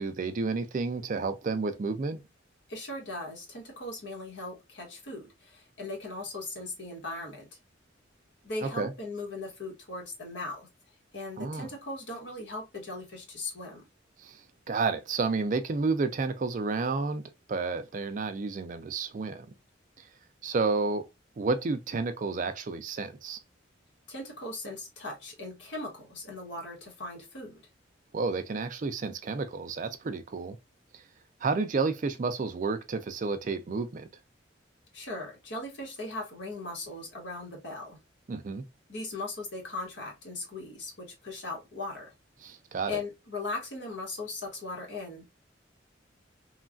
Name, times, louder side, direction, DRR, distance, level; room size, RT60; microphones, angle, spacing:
voice 1, 0.0-2.2 8.6-8.9 11.4-11.7 14.2-17.2 17.5-19.5 20.0-20.1 20.4-21.1 21.4-23.4 28.1-30.6 30.9-31.0 31.4-34.1 38.3-38.7 42.4-43.0, right 4 dB, 40° right, 0.4 m, -31 dB
voice 2, 2.7-7.5 8.4-10.7 11.1-13.9 24.1-27.6 34.9-38.0 38.9-42.1 42.9-45.3, left 2 dB, 65° left, 1.3 m, -38 dB
3.1 x 2.3 x 2.3 m
head